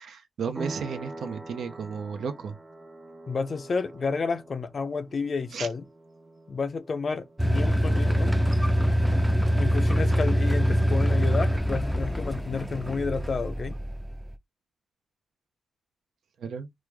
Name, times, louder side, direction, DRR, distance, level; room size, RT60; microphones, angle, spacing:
voice 1, 0.0-2.5 5.5-5.7 16.4-16.7, right 6 dB, 75° right, 0.5 m, -34 dB
sound 1, 0.5-8.9, right 2 dB, 25° right, 0.8 m, -45 dB
voice 2, 3.3-5.9 6.5-8.4 9.6-13.8, left 4 dB, 55° left, 0.5 m, -30 dB
sound 2, 7.4-14.3, equal, 5° right, 0.4 m, -24 dB
sound 3, 7.8-13.5, left 5 dB, 90° left, 0.9 m, -54 dB
3.1 x 2.0 x 3.3 m
supercardioid pair, 40°, 0 cm